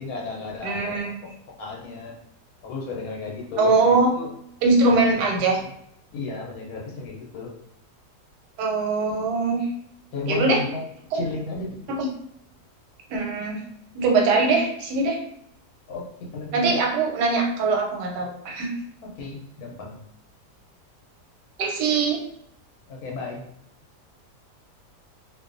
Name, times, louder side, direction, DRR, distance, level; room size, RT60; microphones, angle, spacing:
voice 1, 0.0-2.2 2.6-4.3 4.8-5.3 5.6-5.7 6.1-7.5 10.1-10.8 11.1-12.0 15.9-16.7 19.0-20.0 22.9-23.4, left 3 dB, 70° left, -1 dB, 1.0 m, -34 dB
voice 2, 0.6-1.2 3.6-4.1 4.6-5.6 8.6-9.7 10.3-10.6 11.1-11.2 11.9-12.1 13.1-13.6 13.9-15.2 16.5-18.7 21.6-22.2, right 3 dB, 85° right, 0 dB, 1.2 m, -22 dB
2.6 x 2.2 x 2.4 m, 0.71 s
omnidirectional pair, 1.8 m